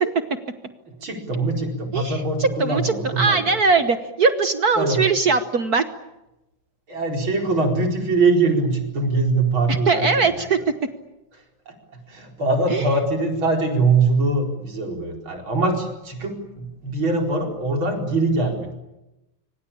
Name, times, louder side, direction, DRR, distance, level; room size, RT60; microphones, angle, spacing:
voice 1, 0.9-3.4 4.7-5.1 6.9-10.4 11.7-18.7, right 3 dB, 40° right, 3 dB, 5.2 m, -22 dB
voice 2, 1.9-5.8 9.7-10.6 12.7-12.8, right 4 dB, 65° right, 9 dB, 0.9 m, -20 dB
26.0 x 25.5 x 8.7 m, 0.95 s
omnidirectional pair, 3.4 m